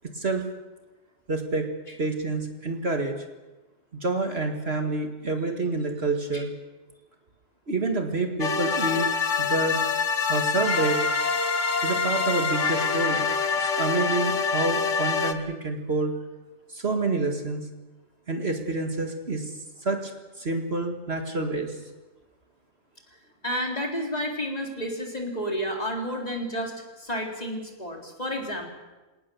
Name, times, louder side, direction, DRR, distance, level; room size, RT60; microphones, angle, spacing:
voice 1, 1.3-1.7 2.0-3.2 3.9-6.5 7.7-9.1 9.4-9.8 10.3-11.0 11.8-13.3 13.6-16.1 16.7-17.6 18.3-19.5 19.8-20.1 20.4-21.8, right 2 dB, 45° right, 4 dB, 2.1 m, -28 dB
sound 1, 8.4-15.3, left 5 dB, 60° left, 1.7 m, -25 dB
voice 2, 23.4-26.7 27.0-28.7, equal, 25° left, 1 dB, 3.7 m, -30 dB
26.0 x 18.5 x 7.0 m, 1.2 s
omnidirectional pair, 1.5 m